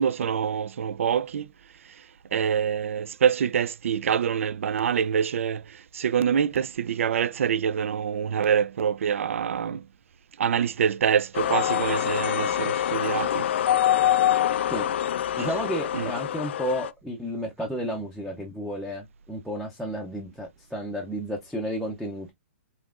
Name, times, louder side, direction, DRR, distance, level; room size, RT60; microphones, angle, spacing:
voice 1, 0.0-1.5 2.3-9.8 10.4-13.5 15.4-15.5 15.9-16.1, right 7 dB, 80° right, 0.4 m, -25 dB
sound 1, 11.3-16.9, left 11 dB, 60° left, 0.4 m, -25 dB
voice 2, 15.4-22.3, equal, ahead, 0.6 m, -32 dB
5.4 x 2.9 x 2.4 m
hypercardioid pair, 160°, 7 cm